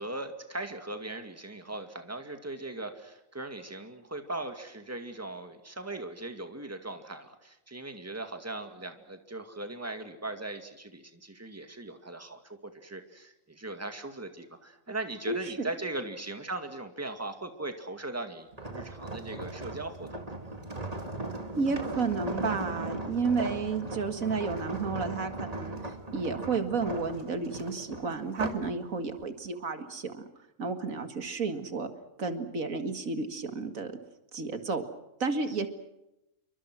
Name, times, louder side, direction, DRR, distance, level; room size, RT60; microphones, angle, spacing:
voice 1, 0.0-20.6, right 2 dB, 10° right, 6 dB, 2.2 m, -39 dB
voice 2, 15.3-15.7 21.6-30.3 30.6-31.9 32.2-33.9 34.3-34.8 35.2-35.7, right 4 dB, 80° right, 8 dB, 2.3 m, -32 dB
sound 1, 18.5-28.7 29.2-29.5, right 2 dB, 30° right, 2.2 m, -38 dB
28.5 x 24.0 x 6.3 m, 0.91 s
omnidirectional pair, 1.4 m